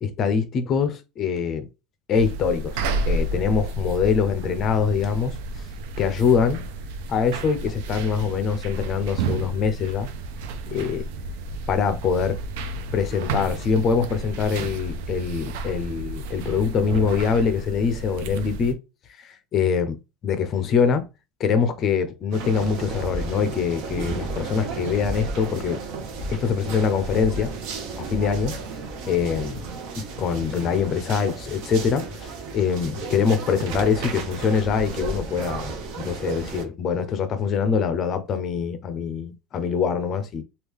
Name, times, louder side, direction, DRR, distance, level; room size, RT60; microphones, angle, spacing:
voice 1, 0.0-1.7 2.1-2.8 3.1-5.4 6.0-6.6 7.1-10.1 10.7-11.0 11.7-12.4 12.9-18.8 19.2-20.0 20.2-21.1 21.4-25.8 26.3-27.5 28.0-28.6 29.1-29.7 30.0-40.4, left 6 dB, 30° left, 0.5 m, -24 dB
sound 1, 2.1-18.7, right 2 dB, 70° right, 0.4 m, -31 dB
sound 2, 22.3-36.6, right 4 dB, 55° right, 0.8 m, -33 dB
3.1 x 2.4 x 3.5 m
cardioid pair, 170°, 0 cm